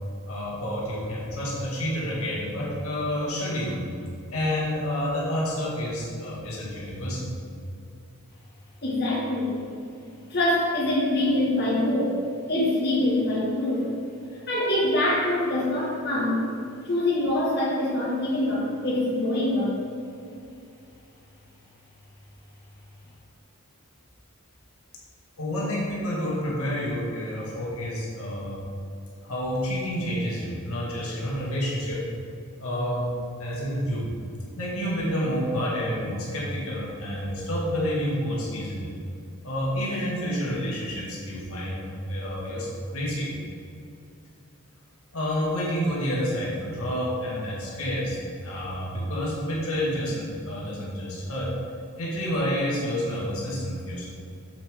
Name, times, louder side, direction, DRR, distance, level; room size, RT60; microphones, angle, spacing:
voice 1, 0.2-3.8 4.3-7.4 25.4-28.6 29.2-32.1 32.6-33.1 33.4-34.1 34.6-38.9 39.4-43.3 45.1-51.5 52.0-54.1, equal, 75° left, -5 dB, 1.8 m, -29 dB
voice 2, 8.8-9.6 10.3-12.2 12.5-13.9 14.5-16.4 16.8-19.7, left 1 dB, 45° left, -6 dB, 1.8 m, -24 dB
7.8 x 7.4 x 3.6 m, 2.5 s
head